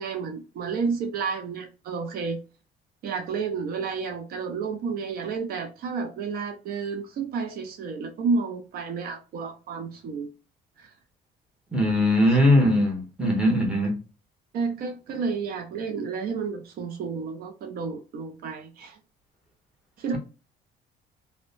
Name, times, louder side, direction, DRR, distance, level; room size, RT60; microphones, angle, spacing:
voice 1, 0.0-2.4 3.0-10.3 10.8-10.9 12.5-12.7 14.5-19.0 20.0-20.2, right 5 dB, 65° right, 0.5 m, -31 dB
voice 2, 11.7-14.0, left 1 dB, 5° right, 1.0 m, -20 dB
2.6 x 2.1 x 2.5 m
cardioid pair, 110°, 17 cm